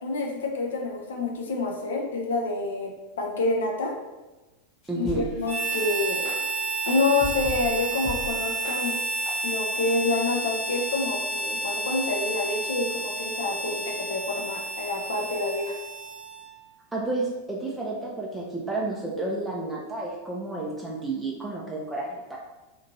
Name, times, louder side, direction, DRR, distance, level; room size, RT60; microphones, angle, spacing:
voice 1, 0.0-2.9 3.2-3.9 5.0-6.2 6.9-8.9 9.4-15.8, left 3 dB, 65° left, 0 dB, 0.5 m, -28 dB
sound 1, 4.8-5.4 5.7-5.8 6.2-6.4 6.9-7.6 8.0-8.2 8.6-8.8 9.3-9.4 9.9-10.0, left 3 dB, 30° left, 0.8 m, -36 dB
voice 2, 4.9-5.2 16.9-22.4, right 2 dB, 10° right, -4 dB, 0.4 m, -31 dB
Harmonica, 5.4-16.5, right 2 dB, 90° left, 1.1 m, -31 dB
2.9 x 2.5 x 2.6 m, 1.1 s
figure-of-eight pair, 90°, 0 cm